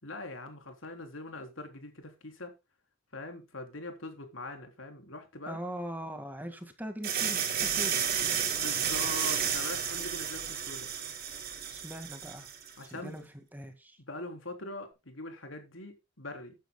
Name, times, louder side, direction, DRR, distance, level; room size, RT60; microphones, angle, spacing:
voice 1, 0.0-2.5 3.1-5.6 8.5-10.9 12.8-13.2 14.1-16.6, left 2 dB, 90° left, 3.5 m, -42 dB
voice 2, 5.5-8.0 11.7-12.5 12.9-13.2 13.5-14.0, equal, 10° right, 1.8 m, -41 dB
sound 1, 7.0-12.7, right 8 dB, 50° right, 3.0 m, -32 dB
14.5 x 9.3 x 2.3 m
head